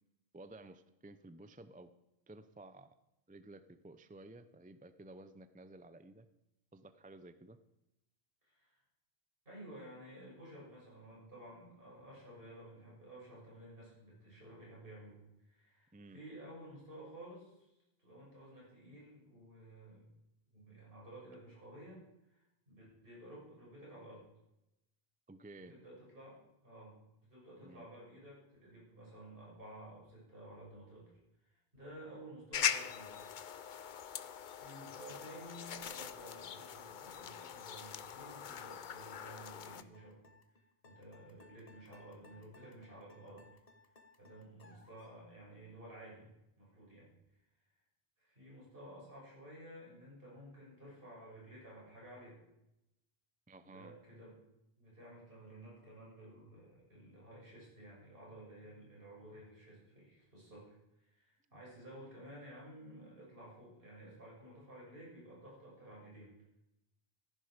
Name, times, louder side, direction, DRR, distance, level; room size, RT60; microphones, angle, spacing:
voice 1, 0.3-1.9 2.3-2.9 3.3-6.3 6.7-7.6 15.9-16.2 25.3-25.7 27.6-27.9 53.5-53.9, right 2 dB, 10° right, 12 dB, 0.4 m, -54 dB
voice 2, 8.4-8.8 9.5-17.7 18.0-20.0 20.5-24.2 25.6-31.1 31.4-33.2 34.5-40.2 40.8-43.5 44.2-46.3 46.6-47.1 48.2-52.4 53.6-54.4 54.8-60.7 61.0-66.3, right 1 dB, 55° right, -5 dB, 7.2 m, -53 dB
sound 1, 32.5-39.8, left 8 dB, 55° left, 0.7 m, -41 dB
sound 2, 39.1-45.2, left 3 dB, 35° left, 1.3 m, -62 dB
14.5 x 11.0 x 5.1 m, 0.89 s
omnidirectional pair, 1.1 m